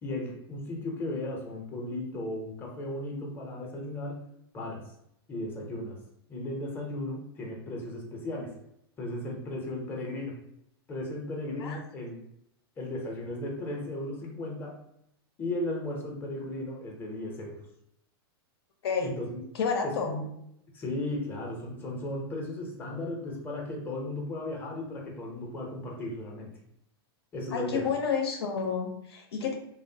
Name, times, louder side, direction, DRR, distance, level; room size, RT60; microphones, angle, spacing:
voice 1, 0.0-4.2 4.5-4.9 5.3-6.0 6.3-8.6 9.0-10.4 10.9-12.2 12.8-14.8 15.4-17.6 19.0-19.4 19.8-20.3 20.7-26.6 27.3-27.9, left 1 dB, 15° left, -1 dB, 0.6 m, -35 dB
voice 2, 18.8-19.2 19.5-20.2 27.5-29.5, left 6 dB, 80° left, 3 dB, 0.6 m, -30 dB
3.0 x 2.0 x 2.6 m, 0.75 s
supercardioid pair, 140°, 13 cm